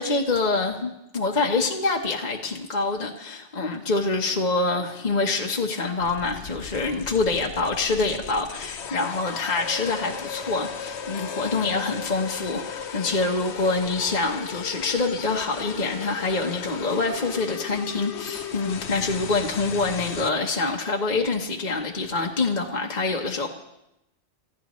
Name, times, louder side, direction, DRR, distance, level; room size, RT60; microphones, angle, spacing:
voice 1, 0.0-23.5, left 3 dB, 40° left, 1 dB, 1.2 m, -26 dB
sound 1, 6.0-20.3, left 7 dB, 70° left, 1.1 m, -36 dB
29.5 x 15.0 x 3.1 m, 0.88 s
omnidirectional pair, 1.2 m